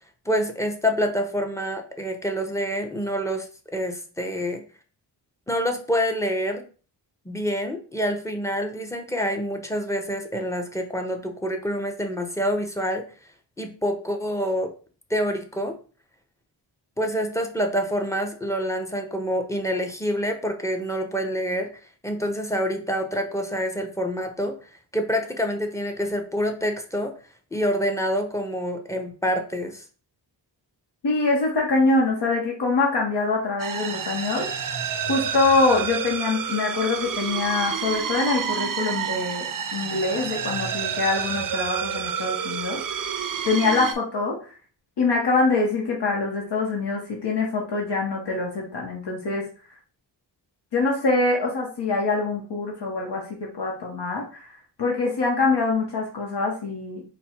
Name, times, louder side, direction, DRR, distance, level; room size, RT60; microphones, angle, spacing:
voice 1, 0.3-3.5 3.7-4.6 5.5-6.7 7.2-13.0 13.6-14.7 15.1-15.8 17.0-21.7 22.0-24.6 24.9-27.1 27.5-29.8, equal, 5° left, 4 dB, 0.7 m, -27 dB
voice 2, 31.0-34.5 35.1-42.8 43.4-44.4 45.0-49.5 50.7-54.5 54.8-57.0, left 3 dB, 65° left, -1 dB, 1.0 m, -24 dB
sound 1, 33.6-43.9, right 7 dB, 50° right, 0.5 m, -29 dB
4.2 x 2.1 x 4.3 m, 0.38 s
wide cardioid pair, 100°, 43 cm